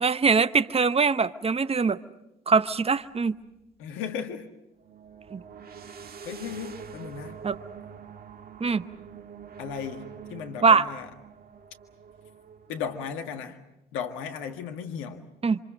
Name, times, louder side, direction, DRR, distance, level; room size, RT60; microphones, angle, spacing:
voice 1, 0.0-2.0 2.5-3.4 5.3-5.4 7.4-7.6 8.6-8.8 10.6-10.9 15.4-15.6, right 5 dB, 30° right, 14 dB, 1.0 m, -22 dB
sound 1, 2.7-2.8 4.8-13.1, right 7 dB, 50° right, 1.8 m, -45 dB
voice 2, 3.8-4.5 6.3-7.4 9.6-10.0 10.3-11.1 12.7-13.6 13.9-15.2, left 7 dB, 75° left, 6 dB, 1.8 m, -35 dB
27.5 x 26.0 x 6.4 m, 0.91 s
hypercardioid pair, 45°, 21 cm